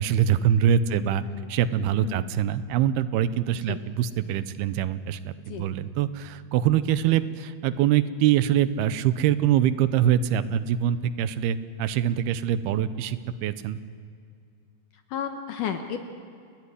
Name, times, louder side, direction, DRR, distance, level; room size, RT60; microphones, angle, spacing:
voice 1, 0.0-1.2 1.5-13.8, right 10 dB, 85° right, 13 dB, 2.8 m, -24 dB
voice 2, 0.9-1.5 2.0-2.3 3.7-3.8 5.5-5.7 14.9-16.1, left 8 dB, 70° left, 6 dB, 2.2 m, -34 dB
29.5 x 13.0 x 9.9 m, 2.4 s
omnidirectional pair, 4.5 m